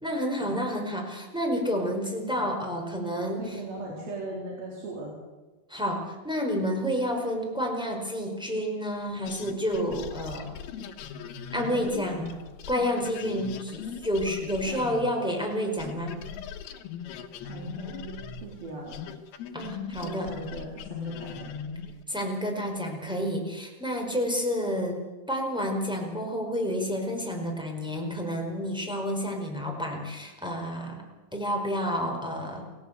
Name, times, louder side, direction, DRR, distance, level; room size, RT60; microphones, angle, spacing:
voice 1, 0.0-3.5 5.7-10.6 11.5-12.3 12.7-16.2 19.5-20.3 22.1-25.0 25.3-31.0 31.3-32.6, equal, ahead, 0 dB, 4.5 m, -30 dB
voice 2, 3.2-5.1 11.5-12.4 14.6-14.9 17.5-19.0 20.0-21.5, right 2 dB, 70° right, -1 dB, 5.6 m, -39 dB
sound 1, 9.3-15.5 15.8-22.0, left 7 dB, 80° left, 3.3 m, -40 dB
29.0 x 17.0 x 8.2 m, 1.2 s
omnidirectional pair, 4.4 m